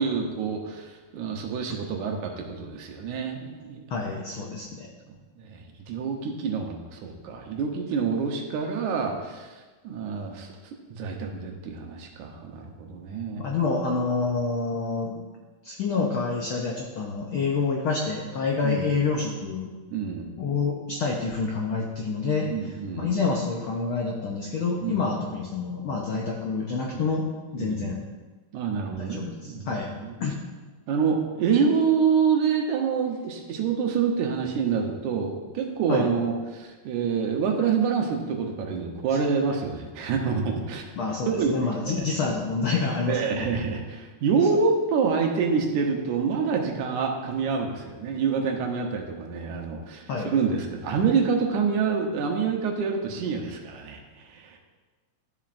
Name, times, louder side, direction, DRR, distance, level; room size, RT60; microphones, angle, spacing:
voice 1, 0.0-3.8 5.1-10.5 10.9-13.5 18.6-18.9 19.9-20.3 22.5-23.1 24.8-25.0 26.9-27.0 27.6-27.9 28.5-30.1 30.9-40.8 41.3-41.6 41.8-42.1 43.1-54.6, right 5 dB, 80° right, 2 dB, 2.4 m, -27 dB
voice 2, 3.9-4.9 13.4-15.3 15.6-19.7 20.4-27.2 27.5-28.0 28.9-29.9 30.2-30.3 35.9-36.1 41.0-43.5 50.1-50.3, left 4 dB, 80° left, 0 dB, 1.1 m, -28 dB
12.5 x 7.2 x 2.5 m, 1.3 s
omnidirectional pair, 3.4 m